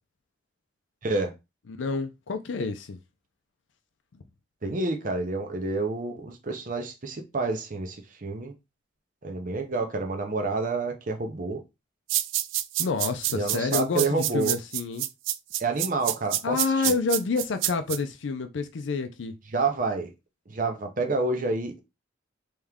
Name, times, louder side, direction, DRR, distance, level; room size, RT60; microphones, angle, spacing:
voice 1, 1.0-1.3 4.6-8.5 9.2-11.6 13.3-14.5 15.6-16.9 19.5-20.1 20.5-21.8, right 3 dB, 45° right, 0.8 m, -29 dB
voice 2, 1.7-3.0 12.8-15.1 16.4-19.3, left 4 dB, 70° left, 0.5 m, -28 dB
sound 1, 12.1-18.0, right 14 dB, 80° right, 0.3 m, -27 dB
3.5 x 3.1 x 3.5 m
head